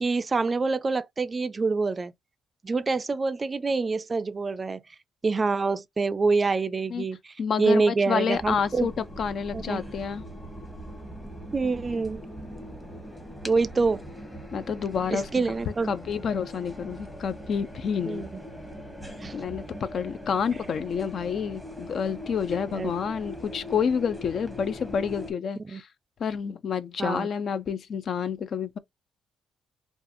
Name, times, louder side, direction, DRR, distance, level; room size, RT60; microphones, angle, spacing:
voice 1, 0.0-2.1 2.6-4.8 5.2-7.2 7.6-8.9 9.5-9.8 11.5-12.2 13.4-14.0 15.1-16.0 18.1-18.3 19.2-19.4 22.7-22.9 25.7-25.8 27.0-27.3, right 4 dB, 30° right, 0.3 m, -26 dB
voice 2, 7.4-10.2 14.5-15.3 15.7-18.3 19.3-25.9 26.2-28.8, left 6 dB, 55° left, 0.4 m, -29 dB
sound 1, 8.3-25.3, equal, 10° left, 0.9 m, -41 dB
2.5 x 2.3 x 2.5 m
cardioid pair, 90°, 0 cm